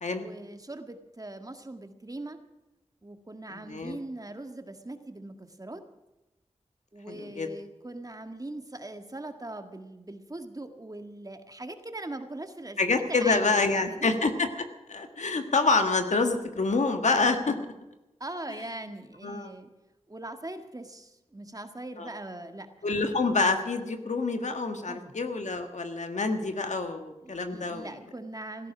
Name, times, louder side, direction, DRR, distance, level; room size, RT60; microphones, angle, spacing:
voice 1, 0.2-2.4 3.0-5.8 6.9-12.8 13.1-14.1 18.2-19.7 20.1-22.7 24.9-25.2 27.2-28.7, right 2 dB, 30° right, 6 dB, 1.8 m, -41 dB
voice 2, 3.5-4.0 7.1-7.5 12.8-17.6 19.2-19.5 22.0-22.1 22.8-27.9, left 3 dB, 85° left, 6 dB, 1.6 m, -27 dB
16.5 x 14.5 x 6.1 m, 0.99 s
wide cardioid pair, 60°, 12 cm